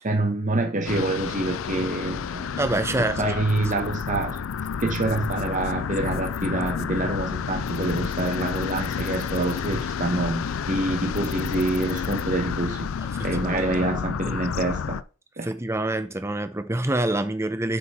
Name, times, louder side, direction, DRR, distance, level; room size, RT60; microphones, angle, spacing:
voice 1, 0.0-2.5 3.0-4.4 4.8-12.9 13.2-15.0 15.4-15.5, right 2 dB, 40° right, 1.2 m, -26 dB
sound 1, 0.9-15.0, left 6 dB, 90° left, 0.4 m, -30 dB
voice 2, 2.6-3.3 13.4-13.6 15.4-17.8, right 2 dB, 15° right, 0.8 m, -26 dB
8.1 x 5.5 x 4.4 m
head